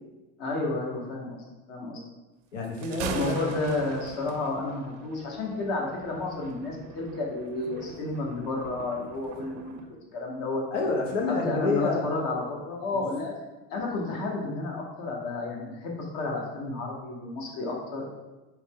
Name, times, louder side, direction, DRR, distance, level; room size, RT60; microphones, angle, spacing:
voice 1, 0.4-2.0 3.0-10.6 11.3-13.3 13.7-18.1, left 3 dB, 65° left, -1 dB, 1.1 m, -31 dB
voice 2, 2.5-3.5 10.7-12.0 12.9-13.0, left 3 dB, 90° left, 0 dB, 0.9 m, -28 dB
Thunder, 2.6-9.9, right 6 dB, 50° right, 0.5 m, -42 dB
4.4 x 2.2 x 3.5 m, 1.1 s
hypercardioid pair, 90°, 36 cm